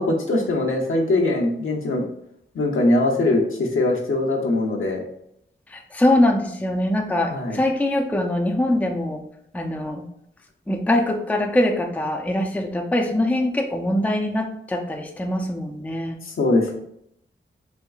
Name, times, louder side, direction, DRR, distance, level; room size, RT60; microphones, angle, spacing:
voice 1, 0.0-2.0 2.5-5.0 7.3-7.6 16.2-16.7, left 2 dB, 80° left, 0 dB, 0.9 m, -21 dB
voice 2, 5.7-9.2 9.5-10.0 10.7-16.2, left 1 dB, 5° left, 3 dB, 0.4 m, -23 dB
4.4 x 3.5 x 2.3 m, 0.74 s
wide cardioid pair, 115°, 21 cm